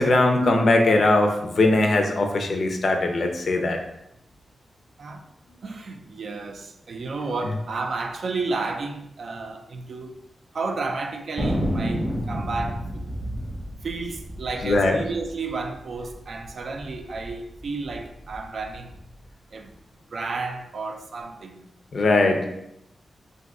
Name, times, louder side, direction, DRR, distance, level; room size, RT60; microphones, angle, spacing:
voice 1, 0.0-3.8 14.6-15.0 21.9-22.4, left 2 dB, 50° left, 0.4 m, -20 dB
voice 2, 5.6-10.1 10.5-13.0 13.8-19.0 19.5-19.7 20.1-21.7, right 3 dB, 60° right, 0.3 m, -32 dB
Thunder, 11.4-16.2 16.5-16.6 16.8-17.3 17.8-19.0, equal, 15° right, 0.8 m, -30 dB
2.6 x 2.3 x 3.7 m
wide cardioid pair, 155°, 0 cm